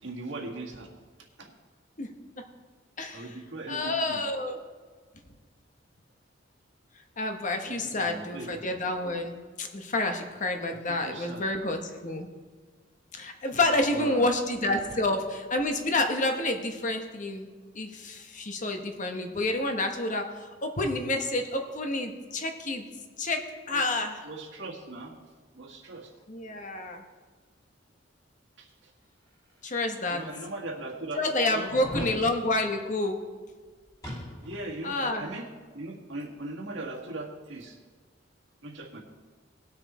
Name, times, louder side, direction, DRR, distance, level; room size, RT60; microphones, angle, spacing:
voice 1, 0.0-0.9 1.4-1.5 3.1-4.2 7.7-8.8 10.9-11.5 13.9-14.3 23.7-23.8 24.3-25.2 25.5-26.1 28.6-28.7 30.1-31.2 31.5-32.1 34.4-35.5 35.7-37.8 38.6-39.0, right 2 dB, 75° right, 0 dB, 1.8 m, -39 dB
voice 2, 3.0-3.4 3.7-4.6 7.2-12.3 13.1-17.5 17.7-22.8 23.2-24.2 26.3-27.0 29.6-30.2 31.1-33.2 34.8-35.3, left 2 dB, 40° left, 5 dB, 1.2 m, -29 dB
sound 1, 29.7-29.8 30.5-30.6 31.7-32.2 34.0-34.7 35.0-35.1, left 1 dB, 20° left, 3.0 m, -37 dB
19.0 x 6.4 x 4.3 m, 1.5 s
head